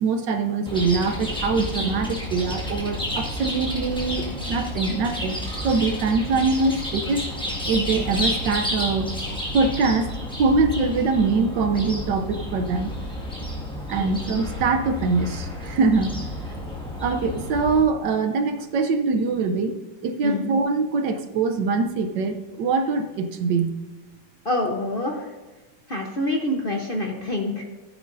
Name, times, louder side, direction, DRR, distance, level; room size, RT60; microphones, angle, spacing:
voice 1, 0.0-7.3 7.7-9.1 9.5-10.1 10.4-12.9 13.9-16.1 17.0-23.8, right 4 dB, 70° right, 7 dB, 1.3 m, -23 dB
Chirp tweet, 0.7-17.8, left 1 dB, 5° left, 1.7 m, -31 dB
voice 2, 24.4-25.3 25.9-27.6, left 1 dB, 40° left, 1 dB, 0.8 m, -26 dB
14.5 x 9.5 x 2.6 m, 1.2 s
omnidirectional pair, 2.1 m